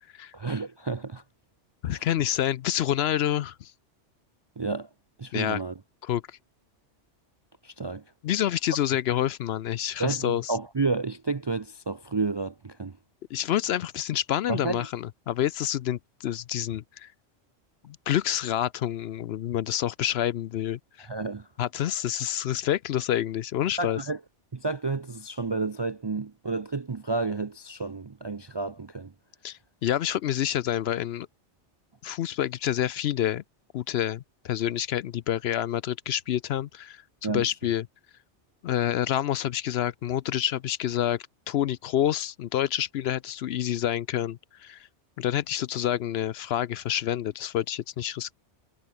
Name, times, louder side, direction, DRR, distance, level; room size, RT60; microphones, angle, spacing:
voice 1, 0.3-1.2 1.8-2.1 4.6-4.9 5.2-5.7 7.6-8.0 10.0-13.0 14.5-14.9 21.0-21.5 23.8-24.2 24.5-29.1 37.2-37.5, right 3 dB, 35° right, 0.4 m, -31 dB
voice 2, 1.8-3.7 5.3-5.6 6.0-6.4 8.2-10.5 13.3-17.1 17.8-21.1 21.6-24.0 29.4-31.3 32.0-33.4 33.7-37.9 38.6-44.9 45.2-48.3, left 11 dB, 65° left, 0.7 m, -28 dB
omnidirectional pair, 1.2 m